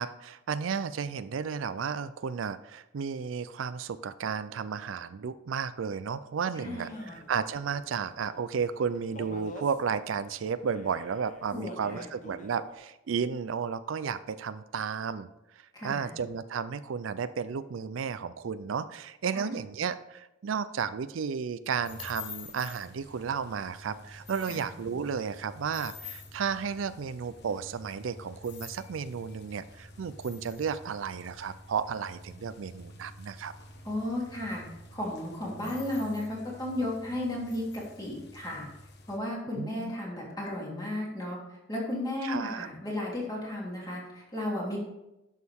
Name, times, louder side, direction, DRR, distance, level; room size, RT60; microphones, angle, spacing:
voice 1, 0.0-15.3 15.8-33.5 39.6-39.9 42.2-42.7, right 6 dB, 85° right, 14 dB, 0.4 m, -33 dB
voice 2, 6.5-7.1 11.5-12.1 15.7-16.1 19.3-19.5 24.5-24.7 33.8-34.6 34.9-38.7 39.1-41.4 41.7-44.8, left 1 dB, 20° left, -5 dB, 3.1 m, -34 dB
sound 1, 6.6-12.8, left 1 dB, 40° left, 0.9 m, -49 dB
sound 2, 21.8-39.2, left 3 dB, 60° left, 1.1 m, -48 dB
11.0 x 6.4 x 3.6 m, 0.93 s
head